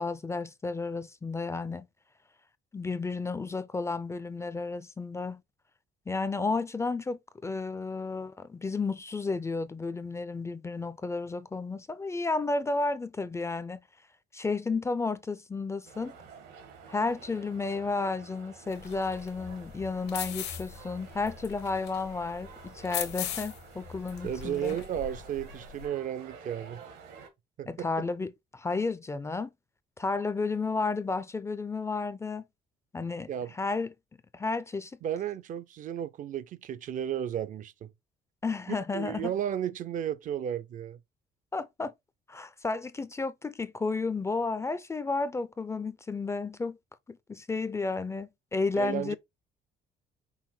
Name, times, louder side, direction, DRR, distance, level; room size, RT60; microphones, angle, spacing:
voice 1, 0.0-1.9 2.7-5.4 6.1-13.8 14.3-16.1 16.9-24.8 27.7-29.5 30.0-32.4 32.9-33.9 34.3-34.9 38.4-39.3 41.5-41.9 42.3-46.8 47.1-49.2, left 3 dB, 15° left, 0.4 m, -32 dB
sound 1, 15.8-27.3, right 6 dB, 85° right, 1.5 m, -50 dB
sound 2, 18.7-25.9, left 10 dB, 80° left, 1.1 m, -40 dB
voice 2, 24.2-26.8 27.6-27.9 33.3-33.5 35.0-37.9 38.9-41.0 48.7-49.2, right 10 dB, 50° right, 0.4 m, -33 dB
5.6 x 2.1 x 4.3 m
cardioid pair, 110°, 17 cm